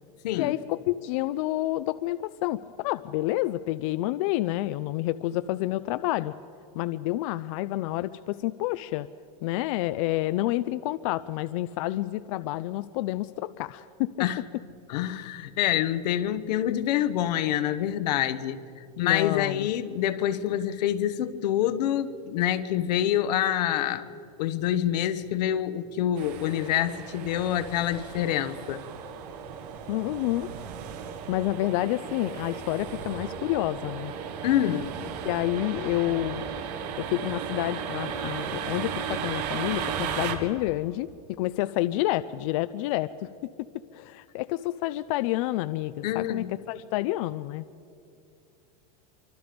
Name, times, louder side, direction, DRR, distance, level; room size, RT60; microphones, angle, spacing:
voice 1, 0.4-6.3 6.7-9.1 9.4-14.3 19.0-19.7 29.9-30.5 31.3-34.1 35.2-36.4 37.0-41.1 41.4-43.7 43.9-47.6, left 16 dB, 50° left, 13 dB, 0.5 m, -29 dB
voice 2, 14.9-18.6 19.0-24.0 24.4-28.8 34.4-34.9 46.0-46.5, left 11 dB, 75° left, 12 dB, 1.1 m, -26 dB
sound 1, 26.2-40.3, right 7 dB, 70° right, 2.3 m, -35 dB
25.5 x 24.5 x 5.2 m, 2.6 s
supercardioid pair, 165°, 21 cm